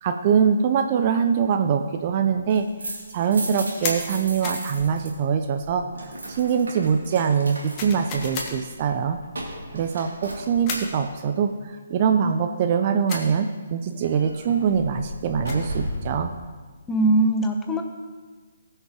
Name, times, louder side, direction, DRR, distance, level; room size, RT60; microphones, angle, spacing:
voice 1, 0.0-5.8 6.3-9.2 9.7-16.3, right 7 dB, 35° right, 6 dB, 0.5 m, -23 dB
sound 1, 2.4-5.1 5.4-11.0 14.0-16.2, right 1 dB, 65° right, 2.5 m, -36 dB
sound 2, 3.8-4.0 4.4-4.7 7.8-8.6 10.7-11.0 13.1-13.3 15.2-15.7, left 4 dB, 25° left, 1.4 m, -31 dB
voice 2, 16.9-17.8, right 2 dB, 10° left, 3 dB, 0.9 m, -20 dB
19.0 x 6.6 x 3.0 m, 1.4 s
figure-of-eight pair, 135°, 0 cm